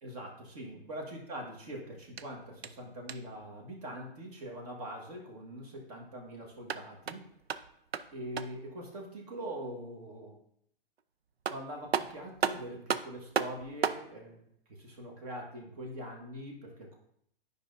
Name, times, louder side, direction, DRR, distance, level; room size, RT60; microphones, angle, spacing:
voice 1, 0.0-7.2 8.1-10.4 11.5-14.4 14.7-17.0, right 1 dB, 40° right, 0 dB, 1.5 m, -43 dB
sound 1, 2.0-3.4 6.5-8.7 11.0-11.1 11.4-14.1, right 7 dB, 90° right, 0.6 m, -35 dB
10.5 x 5.4 x 2.6 m, 0.69 s
hypercardioid pair, 140°, 30 cm